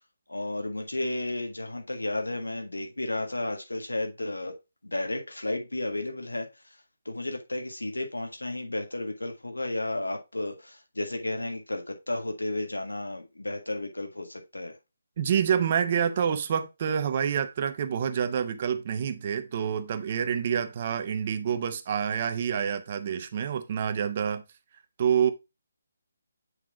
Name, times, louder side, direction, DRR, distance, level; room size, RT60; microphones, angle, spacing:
voice 1, 0.3-4.5 4.8-6.8 7.0-14.8, left 2 dB, 80° left, 1.5 m, -33 dB
voice 2, 15.2-24.4 25.0-25.3, right 8 dB, 40° right, 0.9 m, -27 dB
8.1 x 3.7 x 3.5 m
figure-of-eight pair, 145°, 0 cm